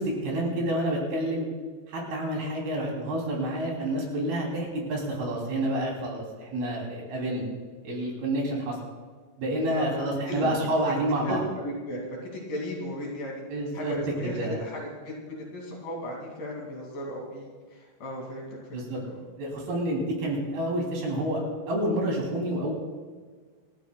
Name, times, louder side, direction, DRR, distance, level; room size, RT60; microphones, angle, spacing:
voice 1, 0.0-1.5 1.9-7.5 7.8-8.8 9.4-11.4 13.5-13.9 14.2-14.6 18.7-19.0 19.4-22.7, right 1 dB, 60° right, -1 dB, 4.9 m, -29 dB
voice 2, 11.3-12.1 12.3-13.4 13.7-19.2, left 1 dB, 55° left, -2 dB, 3.8 m, -36 dB
28.5 x 13.0 x 2.3 m, 1.5 s
omnidirectional pair, 5.2 m